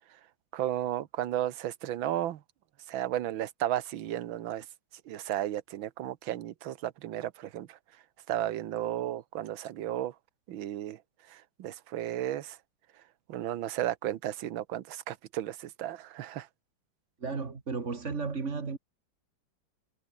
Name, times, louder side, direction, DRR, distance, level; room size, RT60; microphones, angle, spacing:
voice 1, 0.5-2.4 2.9-4.6 5.1-7.8 8.3-10.1 10.5-11.0 11.3-12.6 13.3-16.5, right 12 dB, 80° right, 1.8 m, -34 dB
voice 2, 17.2-18.8, right 4 dB, 35° right, 2.3 m, -34 dB
omnidirectional pair, 2.2 m